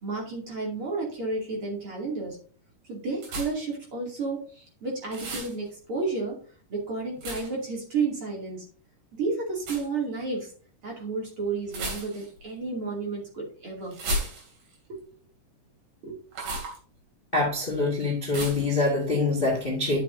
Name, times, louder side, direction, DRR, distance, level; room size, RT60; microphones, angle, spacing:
voice 1, 0.0-2.4 2.9-6.4 6.7-8.6 9.1-10.5 10.8-13.9 14.9-15.0 16.0-16.2, right 3 dB, 40° right, -2 dB, 3.2 m, -31 dB
sound 1, 3.2-3.7 5.1-5.6 7.2-7.7 9.6-9.9 11.7-12.4 13.9-14.8 16.3-16.8 18.3-18.7, right 1 dB, 70° right, 4.5 m, -33 dB
voice 2, 17.3-20.0, left 3 dB, 20° left, -1 dB, 1.5 m, -25 dB
11.5 x 6.8 x 2.7 m, 0.41 s
omnidirectional pair, 4.0 m